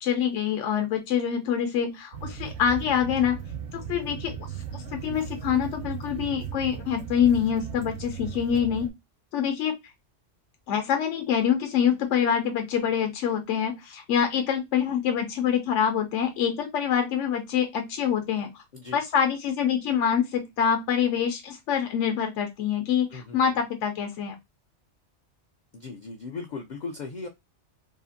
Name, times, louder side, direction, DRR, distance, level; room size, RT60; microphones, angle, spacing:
voice 1, 0.0-3.4 3.7-8.9 9.3-9.7 10.7-18.6 18.9-24.3, left 8 dB, 75° left, 5 dB, 0.9 m, -25 dB
sound 1, 2.1-8.9, right 8 dB, 75° right, 0.9 m, -37 dB
voice 2, 25.7-27.3, left 4 dB, 60° left, 4 dB, 0.4 m, -37 dB
2.8 x 2.4 x 2.5 m, 0.20 s
omnidirectional pair, 1.3 m